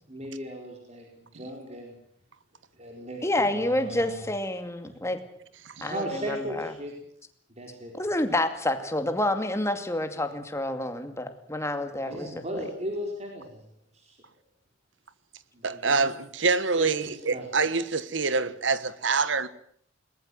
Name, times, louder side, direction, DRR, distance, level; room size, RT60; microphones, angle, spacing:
voice 1, 0.1-2.0 2.8-4.3 4.8-4.9 5.8-6.9 7.5-7.9 12.0-13.7 13.9-14.2 15.5-16.1 16.8-17.5, equal, 35° right, 4.5 m, -37 dB
voice 2, 3.2-5.2 5.8-6.7 8.0-12.3, left 1 dB, 15° left, 2.4 m, -28 dB
voice 3, 15.6-19.5, right 4 dB, 75° right, 1.4 m, -26 dB
21.5 x 20.0 x 7.8 m
head